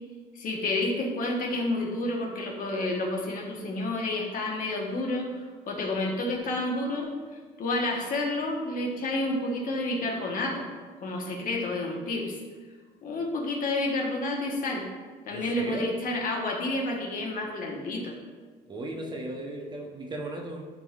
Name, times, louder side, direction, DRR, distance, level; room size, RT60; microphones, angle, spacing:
voice 1, 0.3-7.1 7.6-10.7 11.0-12.3 13.0-14.8 15.3-18.1, left 2 dB, 55° left, 0 dB, 1.3 m, -30 dB
voice 2, 15.3-15.9 18.7-20.7, right 1 dB, 25° right, 1 dB, 0.9 m, -36 dB
10.5 x 3.7 x 2.4 m, 1.4 s
cardioid pair, 110°, 17 cm